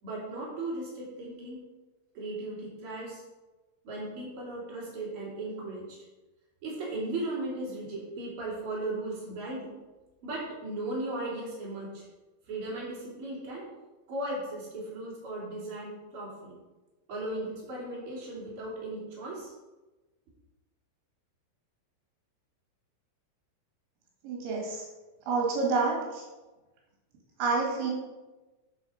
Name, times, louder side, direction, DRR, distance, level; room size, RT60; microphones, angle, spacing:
voice 1, 0.0-1.6 2.1-3.2 3.8-6.0 6.6-9.7 10.2-12.1 12.5-13.7 14.1-16.6 17.1-19.5, right 2 dB, 30° right, -6 dB, 3.6 m, -36 dB
voice 2, 24.2-24.9 25.3-26.2 27.4-27.9, right 4 dB, 80° right, -2 dB, 4.3 m, -28 dB
11.5 x 5.6 x 5.2 m, 1.1 s
omnidirectional pair, 5.4 m